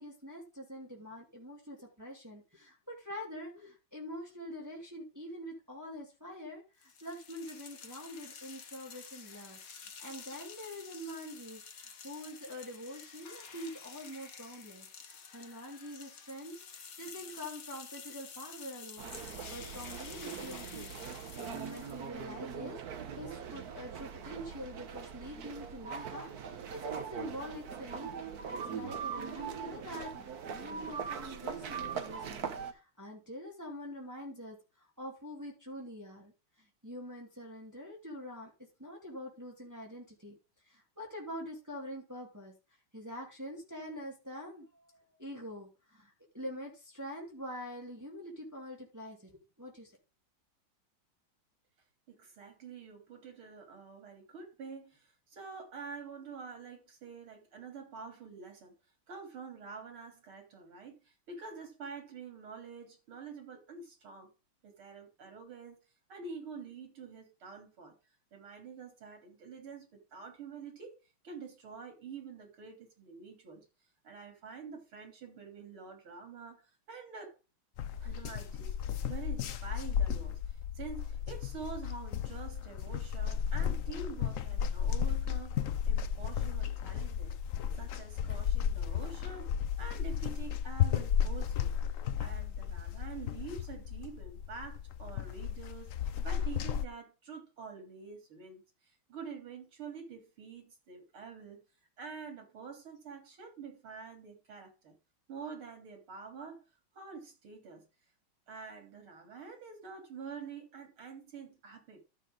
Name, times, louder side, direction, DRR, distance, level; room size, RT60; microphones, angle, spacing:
voice 1, 0.0-20.9 21.4-28.1 28.5-36.3 36.6-38.5 38.8-40.4 40.6-42.5 42.9-49.9, equal, 10° right, 2.8 m, -45 dB
sound 1, 6.8-22.1, left 6 dB, 45° left, 1.5 m, -50 dB
sound 2, 19.0-32.7, right 7 dB, 50° right, 1.5 m, -41 dB
voice 2, 52.1-58.7 59.1-64.3 64.6-65.8 66.1-67.9 68.3-71.0 71.2-73.6 74.0-76.6 76.9-77.3 78.0-85.6 85.9-87.3 87.8-89.5 89.8-91.7 92.2-98.6 99.1-101.6 102.0-104.9 105.3-106.6 106.9-107.8 108.5-112.0, right 5 dB, 85° right, 4.1 m, -47 dB
sound 3, 77.8-96.9, left 8 dB, 75° left, 0.7 m, -34 dB
13.0 x 6.4 x 3.8 m
omnidirectional pair, 2.3 m